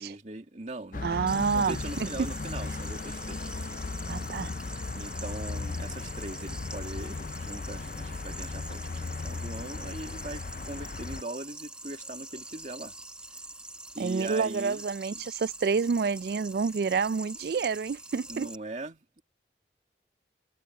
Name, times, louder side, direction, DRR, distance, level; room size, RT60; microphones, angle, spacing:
voice 1, 0.0-1.3 1.5-3.5 4.9-12.9 13.9-14.8 18.3-19.2, right 2 dB, 40° right, 2.1 m, -40 dB
sound 1, 0.9-11.2, left 3 dB, 45° left, 0.4 m, -36 dB
voice 2, 1.0-2.1 4.1-4.5 14.0-18.5, right 5 dB, 60° right, 0.3 m, -28 dB
sound 2, 1.3-18.6, right 2 dB, 5° right, 0.9 m, -44 dB
head